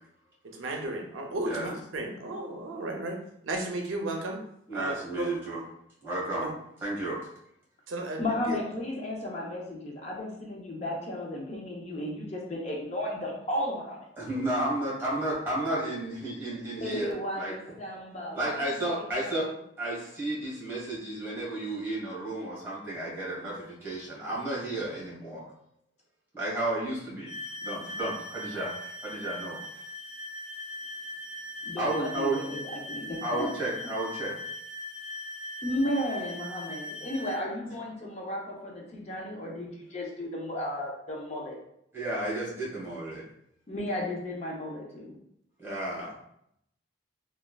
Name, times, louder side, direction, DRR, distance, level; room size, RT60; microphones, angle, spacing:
voice 1, 0.4-4.4 4.7-5.3 6.4-6.5 7.9-8.6, right 2 dB, 85° right, 2 dB, 0.5 m, -34 dB
voice 2, 4.7-5.6 6.0-6.5 6.8-7.2 14.2-17.5 18.3-19.5 19.8-25.4 26.3-27.3 27.6-29.6 31.8-32.4 33.2-34.4 41.9-43.2 45.6-46.2, right 1 dB, 10° right, -6 dB, 1.1 m, -32 dB
voice 3, 8.2-14.1 16.8-19.3 31.6-33.5 35.6-41.6 43.7-45.2, left 1 dB, 35° left, -2 dB, 0.5 m, -34 dB
sound 1, 27.3-37.4, left 1 dB, 65° left, 0.8 m, -40 dB
3.2 x 2.2 x 2.2 m, 0.74 s
head